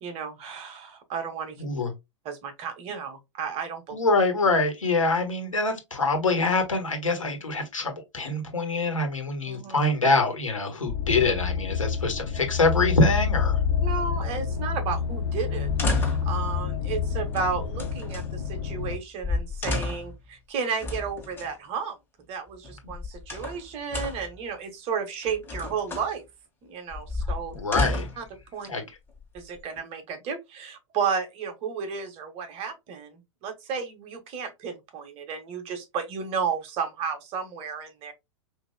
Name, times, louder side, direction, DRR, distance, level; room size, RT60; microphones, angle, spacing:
voice 1, 0.0-1.6 2.2-4.0 9.4-9.8 13.8-22.0 22.3-26.3 26.6-27.6 28.2-28.7 29.3-38.1, right 6 dB, 40° right, 1.3 m, -33 dB
voice 2, 1.6-1.9 3.9-13.6 27.5-28.1 28.7-28.8, left 3 dB, 85° left, 1.5 m, -25 dB
sound 1, 10.9-19.0, left 6 dB, 55° left, 0.7 m, -28 dB
sound 2, 15.6-16.4 17.3-18.3 18.9-19.0 19.2-20.2 20.8-21.5 22.6-23.6 23.9-24.3 25.2-26.1 26.9-28.3 29.1-29.8, left 2 dB, 15° left, 1.7 m, -31 dB
5.7 x 2.9 x 2.2 m
figure-of-eight pair, 100°, 16 cm